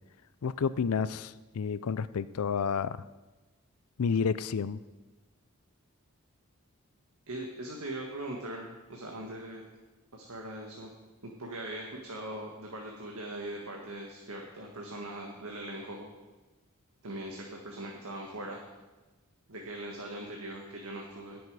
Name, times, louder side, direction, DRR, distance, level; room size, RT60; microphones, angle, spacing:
voice 1, 0.4-3.0 4.0-4.8, left 6 dB, 90° left, 16 dB, 0.5 m, -30 dB
voice 2, 7.3-9.6 10.1-10.9 11.2-16.1 17.0-18.7 19.5-21.4, right 1 dB, 85° right, 0 dB, 1.5 m, -40 dB
17.0 x 7.1 x 4.8 m, 1.2 s
head